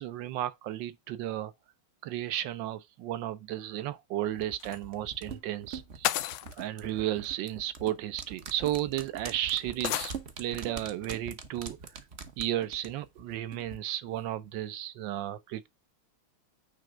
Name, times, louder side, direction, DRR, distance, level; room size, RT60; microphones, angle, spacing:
voice 1, 0.0-1.5 2.0-6.1 6.6-10.1 10.4-11.8 12.4-15.7, right 13 dB, 70° right, 1.3 m, -33 dB
sound 1, 4.4-13.8 14.1-14.2, right 5 dB, 50° right, 0.8 m, -44 dB
sound 2, 4.6-4.8 6.0-6.6 7.8-7.9 8.7-8.8 9.8-10.2, left 14 dB, 75° left, 1.3 m, -31 dB
9.2 x 3.2 x 4.9 m
omnidirectional pair, 2.3 m